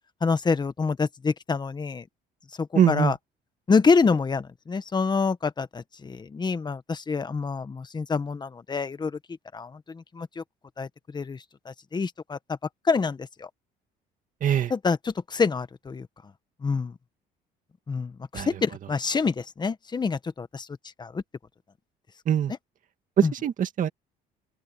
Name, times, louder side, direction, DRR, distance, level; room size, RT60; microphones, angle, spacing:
voice 1, 0.2-2.0 2.6-3.2 3.7-9.2 9.5-10.4 10.8-12.4 12.8-13.5 14.7-16.1 16.6-16.9 17.9-20.7 21.0-21.2 23.2-23.3, left 4 dB, 25° left, 1.4 m, -26 dB
voice 2, 2.7-3.1 14.4-14.7 18.3-18.5 22.3-22.5 23.2-23.9, right 9 dB, 50° right, 2.2 m, -22 dB
open air
cardioid pair, 110°, 17 cm